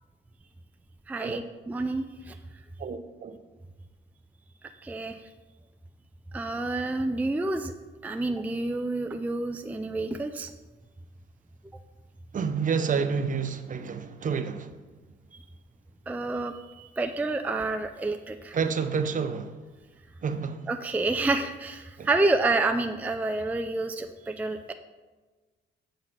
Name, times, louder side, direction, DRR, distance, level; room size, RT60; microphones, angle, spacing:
voice 1, 1.1-2.3 4.8-5.2 6.3-7.7 8.0-10.5 16.1-18.6 20.7-24.7, right 2 dB, 10° right, 0.4 m, -29 dB
voice 2, 2.8-3.4 12.3-14.7 18.5-19.5 20.2-20.7 22.0-22.1, right 6 dB, 40° right, 0.7 m, -29 dB
7.8 x 3.9 x 5.9 m
cardioid pair, 90°, 20 cm